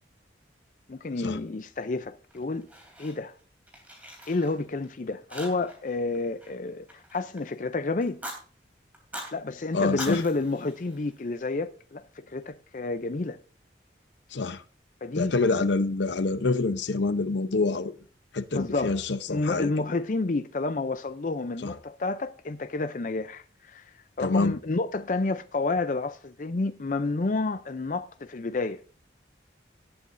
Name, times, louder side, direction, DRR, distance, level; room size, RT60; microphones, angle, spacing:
voice 1, 0.9-2.7 3.0-3.3 4.3-8.2 9.3-13.4 15.0-15.3 18.5-19.0 19.3-23.9 24.2-28.8, left 3 dB, 45° left, 0.5 m, -30 dB
Fire, 2.3-3.4 3.7-4.9 5.3-5.9 6.1-7.5 8.0-8.4 8.9-9.3 9.8-11.4, equal, 10° right, 3.2 m, -42 dB
voice 2, 9.7-10.2 14.3-14.6 15.1-17.9 18.3-19.7 21.6-21.7 24.2-24.6, left 3 dB, 75° left, 0.7 m, -26 dB
18.0 x 8.4 x 2.6 m
head